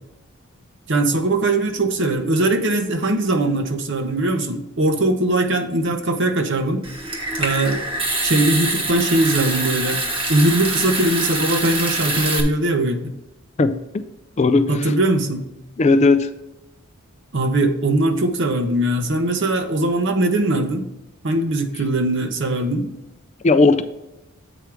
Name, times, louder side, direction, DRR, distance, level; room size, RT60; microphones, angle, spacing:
voice 1, 0.9-6.9 7.4-7.8 8.2-10.0 10.3-13.1 14.7-15.4 17.3-20.9 21.2-22.9, right 2 dB, 55° right, 6 dB, 0.9 m, -20 dB
Water tap faucet / Sink (filling or washing) / Trickle dribble, 6.8-12.4, right 2 dB, 25° right, 1.1 m, -25 dB
voice 2, 14.4-14.7 15.8-16.3 23.4-23.8, left 3 dB, 30° left, 11 dB, 0.3 m, -15 dB
8.1 x 4.8 x 4.7 m, 0.96 s
head